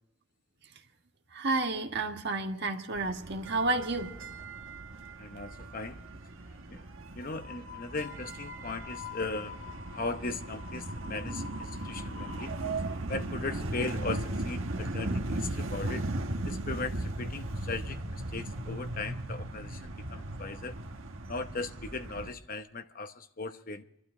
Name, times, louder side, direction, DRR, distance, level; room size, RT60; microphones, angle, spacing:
voice 1, 1.3-4.1, right 2 dB, 55° right, 1.5 m, -31 dB
sound 1, 2.9-22.3, right 1 dB, 70° right, 1.4 m, -37 dB
voice 2, 5.2-6.0 6.7-6.8 7.1-9.6 9.9-12.5 13.1-16.1 16.4-20.7 21.3-23.8, left 3 dB, 45° left, 1.0 m, -38 dB
25.5 x 12.0 x 3.8 m
head